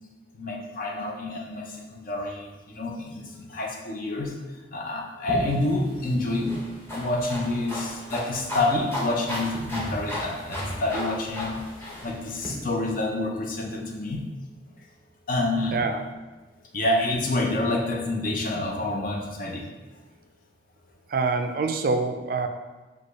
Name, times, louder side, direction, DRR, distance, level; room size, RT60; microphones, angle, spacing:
voice 1, 0.3-4.3 4.7-6.6 6.9-11.6 12.0-14.2 15.3-15.8 16.7-19.7, left 2 dB, 50° left, 0 dB, 0.6 m, -28 dB
sound 1, 5.3-12.5, left 1 dB, 15° left, 0.8 m, -34 dB
voice 2, 15.7-16.0 21.1-22.5, right 4 dB, 55° right, 6 dB, 0.3 m, -25 dB
4.8 x 2.3 x 3.9 m, 1.2 s
head